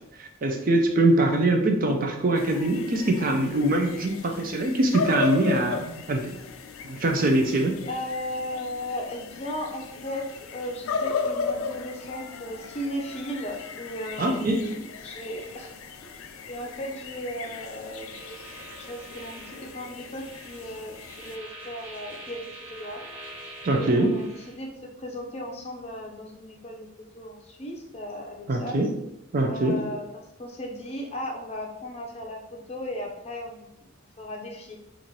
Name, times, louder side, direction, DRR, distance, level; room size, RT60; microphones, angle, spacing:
voice 1, 0.2-6.4 6.9-7.7 14.2-14.7 23.6-24.1 28.5-28.9 29.3-29.8, right 1 dB, 40° right, 3 dB, 0.4 m, -23 dB
sound 1, 2.3-21.4, left 5 dB, 80° left, 0.4 m, -36 dB
voice 2, 7.9-15.7 16.0-16.1 16.4-18.4 18.8-23.1 23.7-24.7 25.0-26.9 27.2-28.9 29.5-32.4 32.7-33.8 34.2-34.7, left 1 dB, 30° left, 1 dB, 0.5 m, -36 dB
sound 2, 17.8-24.6, right 1 dB, 10° right, 0.9 m, -45 dB
4.1 x 2.5 x 3.1 m, 0.84 s
head